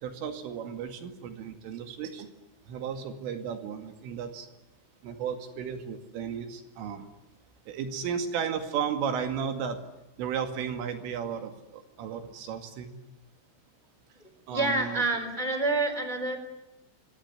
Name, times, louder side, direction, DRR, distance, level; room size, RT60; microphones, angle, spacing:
voice 1, 0.0-2.3 2.7-4.5 5.0-7.1 7.7-9.8 10.2-13.0 14.5-15.0, right 7 dB, 75° right, 7 dB, 4.7 m, -34 dB
voice 2, 14.5-16.4, right 2 dB, 10° left, 8 dB, 3.5 m, -27 dB
26.5 x 23.0 x 9.8 m, 0.95 s
omnidirectional pair, 5.8 m